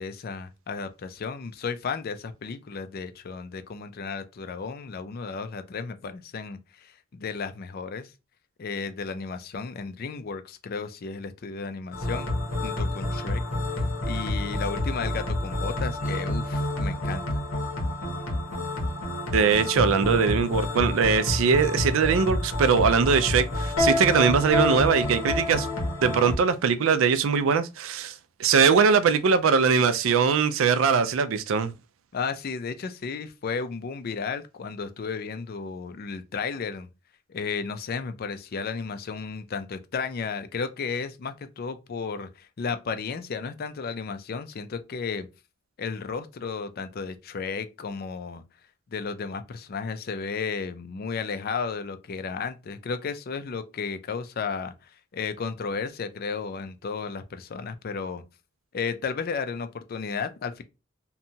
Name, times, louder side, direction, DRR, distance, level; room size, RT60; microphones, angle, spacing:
voice 1, 0.0-8.1 8.6-12.3 12.6-13.4 14.0-17.3 32.1-36.9 37.3-45.3 45.8-48.4 48.9-58.2 58.7-60.6, left 5 dB, 50° left, 0.4 m, -33 dB
sound 1, 11.9-26.4, left 1 dB, 85° left, 1.0 m, -28 dB
voice 2, 19.3-25.7 26.0-28.1 28.4-31.7, right 6 dB, 75° right, 0.4 m, -21 dB
2.7 x 2.2 x 2.7 m
head